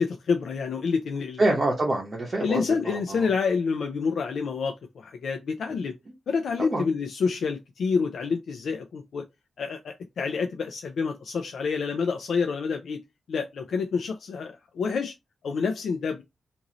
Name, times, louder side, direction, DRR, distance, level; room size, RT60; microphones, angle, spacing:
voice 1, 0.0-1.4 2.4-5.9 6.3-9.2 9.6-13.0 13.3-15.1 15.4-16.2, left 5 dB, 70° left, 0.4 m, -28 dB
voice 2, 1.4-3.3 6.7-6.9, right 2 dB, 30° right, 0.9 m, -26 dB
3.0 x 2.6 x 3.8 m
wide cardioid pair, 150°, 0 cm